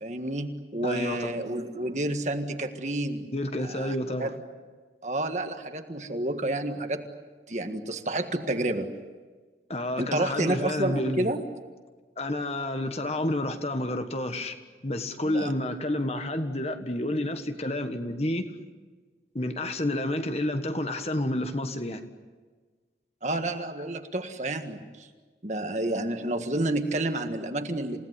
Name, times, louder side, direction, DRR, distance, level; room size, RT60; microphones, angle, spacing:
voice 1, 0.0-3.3 3.6-4.3 5.0-7.0 7.5-8.9 10.0-11.4 15.2-15.5 23.2-25.1 25.4-28.0, right 1 dB, 40° right, 6 dB, 1.7 m, -30 dB
voice 2, 0.8-1.3 3.3-4.3 9.7-11.3 12.2-14.5 14.8-18.5 19.3-22.0, left 1 dB, 35° left, 7 dB, 1.5 m, -29 dB
29.0 x 17.5 x 9.7 m, 1.4 s
head